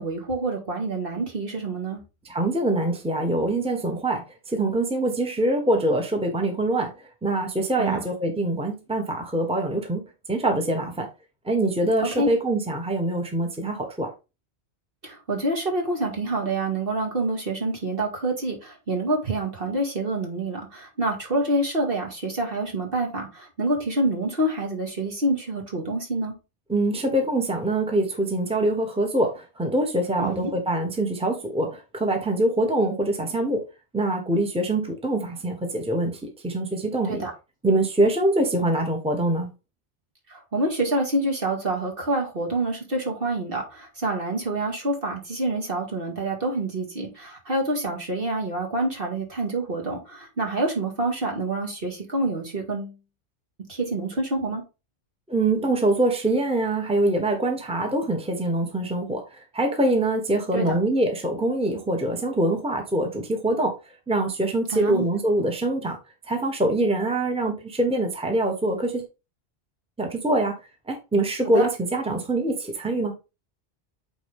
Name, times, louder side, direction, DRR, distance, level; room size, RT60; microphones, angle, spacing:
voice 1, 0.0-2.0 7.8-8.0 12.2-12.3 15.0-26.3 30.2-30.5 37.1-37.3 40.3-53.0 53.7-54.6 60.5-60.8 64.7-65.1 71.5-71.7, right 2 dB, 50° right, 2.3 m, -27 dB
voice 2, 2.3-6.9 7.2-10.0 10.3-11.1 11.4-14.1 26.7-33.6 33.9-37.2 37.6-39.5 55.3-63.7 64.1-66.0 66.3-69.0 70.0-70.5 70.9-73.1, right 1 dB, 5° right, 1.3 m, -24 dB
8.9 x 4.1 x 3.6 m
omnidirectional pair, 1.2 m